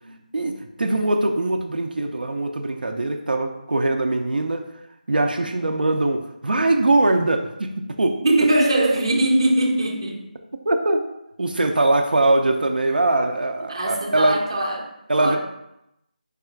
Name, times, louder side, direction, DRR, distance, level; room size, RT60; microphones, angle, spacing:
voice 1, 0.3-4.7 5.1-8.2 10.7-11.0 11.4-14.4 15.1-15.4, right 2 dB, 80° right, 4 dB, 0.5 m, -21 dB
voice 2, 8.2-10.3 13.7-14.9 15.2-15.4, right 1 dB, 35° right, 0 dB, 0.6 m, -21 dB
4.8 x 2.3 x 4.4 m, 0.84 s
figure-of-eight pair, 175°, 5 cm